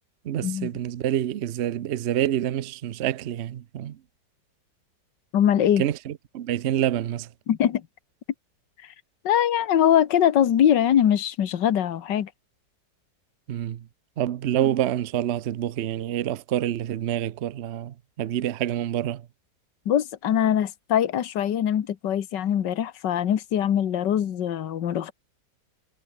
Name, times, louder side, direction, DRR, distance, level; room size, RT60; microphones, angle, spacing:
voice 1, 0.2-4.0 5.8-7.3 13.5-13.9 14.2-19.2, right 11 dB, 65° right, 0.6 m, -27 dB
voice 2, 5.3-5.8 7.5-7.8 9.2-12.3 19.9-25.1, left 10 dB, 70° left, 1.9 m, -22 dB
omnidirectional pair, 2.0 m